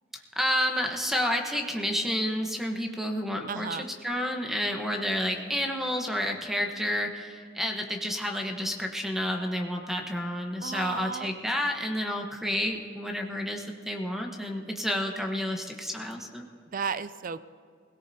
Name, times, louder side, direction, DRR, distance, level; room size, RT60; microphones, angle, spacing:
voice 1, 0.4-16.5, equal, ahead, 2 dB, 1.0 m, -30 dB
voice 2, 3.5-3.9 10.6-11.3 16.7-17.5, right 6 dB, 50° right, 14 dB, 0.4 m, -34 dB
21.5 x 17.0 x 2.8 m, 2.1 s
head